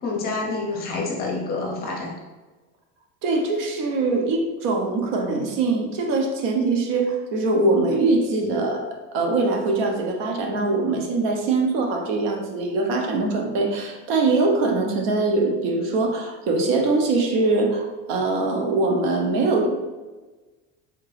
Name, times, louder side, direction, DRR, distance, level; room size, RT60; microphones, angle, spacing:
voice 1, 0.0-2.1, left 3 dB, 30° left, -1 dB, 0.7 m, -27 dB
voice 2, 3.2-8.8 9.1-19.7, right 3 dB, 70° right, 2 dB, 0.8 m, -22 dB
3.6 x 2.8 x 3.1 m, 1.2 s
cardioid pair, 170°, 32 cm